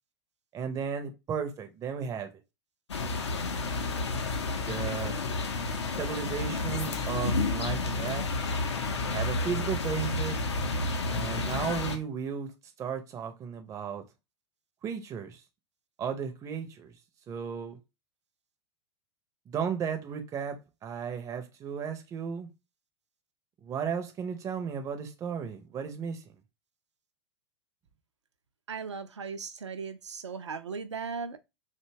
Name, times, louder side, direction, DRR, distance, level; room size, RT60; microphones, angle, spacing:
voice 1, 0.5-2.3 4.7-5.2 6.0-8.3 8.9-10.4 11.0-12.5 12.8-14.0 14.8-15.4 16.0-16.9 17.3-17.8 19.5-22.5 23.6-26.2, right 7 dB, 20° right, 0.4 m, -34 dB
sound 1, 2.9-12.0, left 3 dB, 75° left, 0.5 m, -31 dB
voice 2, 28.7-31.4, right 5 dB, 80° right, 0.4 m, -37 dB
2.7 x 2.2 x 2.7 m
figure-of-eight pair, 90°, 15 cm